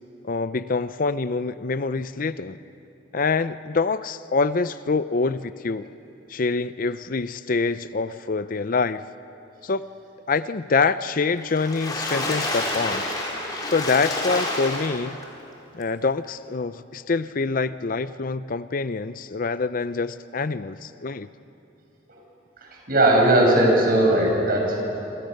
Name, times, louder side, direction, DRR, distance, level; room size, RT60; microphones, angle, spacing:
voice 1, 0.2-2.6 3.1-5.9 6.3-9.0 9.6-9.8 10.3-13.0 13.7-15.2 15.7-21.3, left 4 dB, 45° left, 14 dB, 0.6 m, -25 dB
Water / Splash splatter, 11.4-15.2 15.8-15.9 16.2-16.3, left 1 dB, 20° left, 4.5 m, -28 dB
voice 2, 22.6-24.8, right 1 dB, 50° right, -1 dB, 7.0 m, -18 dB
27.0 x 27.0 x 6.6 m, 2.9 s
head